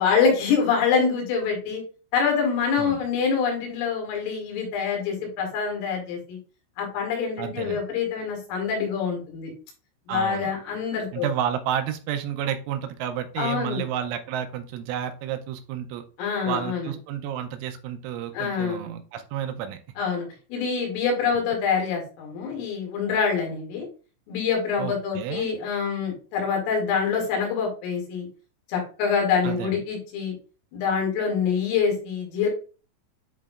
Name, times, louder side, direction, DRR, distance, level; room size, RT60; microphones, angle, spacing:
voice 1, 0.0-1.8 2.1-6.4 6.8-9.5 10.1-11.3 13.4-13.8 16.2-16.9 18.3-18.9 20.0-23.9 24.3-28.3 28.7-30.4 30.7-32.5, left 6 dB, 85° left, -1 dB, 4.7 m, -25 dB
voice 2, 7.4-7.8 10.1-10.5 11.1-16.0 16.5-19.8 21.3-21.4 24.8-25.5 29.4-29.8, right 9 dB, 85° right, 7 dB, 2.9 m, -31 dB
10.5 x 3.7 x 2.4 m, 0.36 s
omnidirectional pair, 5.8 m